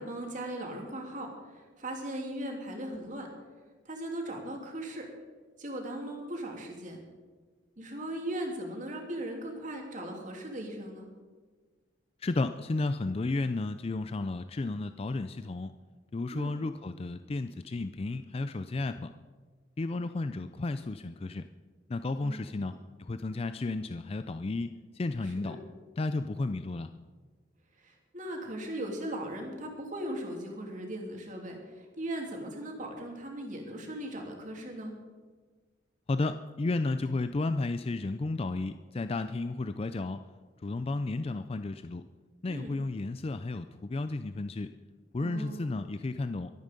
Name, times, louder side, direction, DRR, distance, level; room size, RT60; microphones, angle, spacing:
voice 1, 0.0-3.3 3.8-5.1 5.6-7.0 7.8-11.1 16.3-16.5 22.2-22.4 22.7-22.8 25.4-25.6 27.8-34.9 42.5-42.7 45.2-45.7, right 1 dB, 45° right, 1 dB, 2.8 m, -38 dB
voice 2, 12.2-15.7 16.1-19.1 19.8-21.4 21.9-22.7 23.0-25.6 26.0-26.9 36.1-40.2 40.6-42.0 42.4-44.7 45.1-46.5, left 2 dB, 30° left, 10 dB, 0.4 m, -33 dB
23.0 x 9.1 x 5.2 m, 1.4 s
head